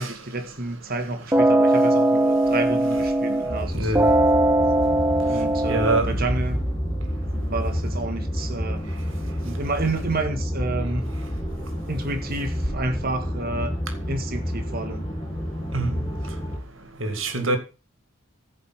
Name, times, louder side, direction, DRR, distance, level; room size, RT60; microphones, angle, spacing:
voice 1, 0.0-3.9 5.3-6.7 7.3-8.9 9.4-11.1 11.9-13.8 14.1-15.1, right 2 dB, 45° right, 1.8 m, -30 dB
sound 1, 1.3-3.6 3.9-6.0, right 1 dB, 10° right, 0.6 m, -20 dB
sound 2, 3.5-16.6, equal, 20° left, 1.9 m, -29 dB
voice 2, 5.7-6.1 15.7-15.9 17.0-17.6, right 2 dB, 65° right, 2.3 m, -24 dB
15.0 x 5.3 x 5.8 m
head